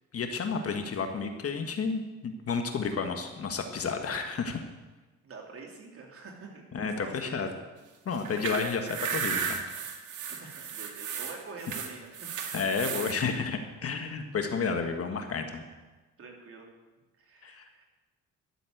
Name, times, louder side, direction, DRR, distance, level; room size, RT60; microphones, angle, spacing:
voice 1, 0.1-4.6 6.7-7.5 8.0-9.6 12.5-15.6 17.4-17.6, left 5 dB, 50° left, 6 dB, 1.5 m, -31 dB
voice 2, 5.2-7.5 10.2-12.3 15.7-15.8 16.2-16.7 17.2-17.8, right 4 dB, 50° right, 0 dB, 3.1 m, -46 dB
sound 1, 8.1-13.2, right 6 dB, 75° right, 1.8 m, -34 dB
12.5 x 7.6 x 7.9 m, 1.2 s
cardioid pair, 90°, 30 cm